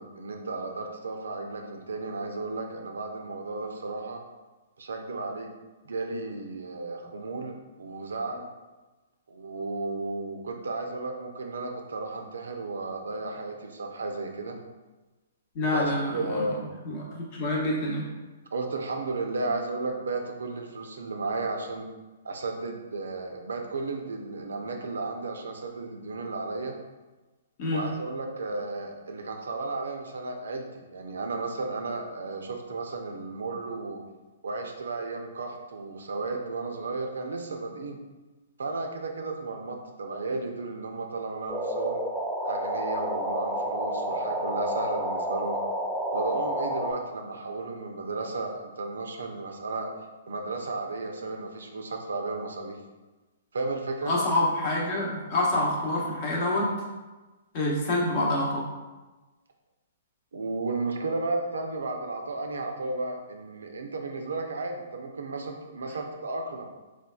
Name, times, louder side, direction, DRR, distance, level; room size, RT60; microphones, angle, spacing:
voice 1, 0.0-4.2 4.8-5.5 5.8-8.5 9.3-14.6 15.7-16.7 18.5-21.9 22.2-26.7 27.7-34.0 34.4-38.0 38.6-42.0 42.4-45.6 46.1-49.9 50.3-52.8 53.5-54.1 60.3-66.7, right 3 dB, 70° right, 3 dB, 0.4 m, -34 dB
voice 2, 15.5-16.5 16.8-18.1 27.6-27.8 54.0-56.7 57.5-58.6, left 1 dB, 40° left, -2 dB, 0.8 m, -27 dB
sound 1, 41.5-46.9, right 1 dB, ahead, 0.4 m, -30 dB
4.2 x 2.2 x 2.3 m, 1.2 s
figure-of-eight pair, 120°, 0 cm